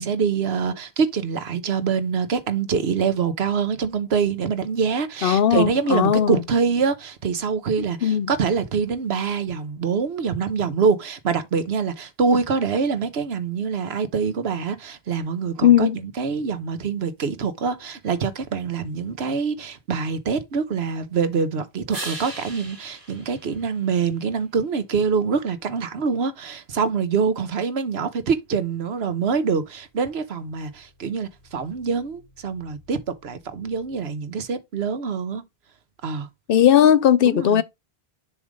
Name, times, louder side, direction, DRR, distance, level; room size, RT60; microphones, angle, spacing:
voice 1, 0.0-35.4 36.0-36.3 37.2-37.6, right 5 dB, 75° right, 1.2 m, -25 dB
voice 2, 5.2-6.4 8.0-8.3 15.6-16.0 36.5-37.6, left 10 dB, 65° left, 0.7 m, -17 dB
sound 1, 21.9-24.5 30.2-34.2, right 2 dB, 55° right, 2.2 m, -42 dB
7.0 x 3.3 x 5.1 m
omnidirectional pair, 1.1 m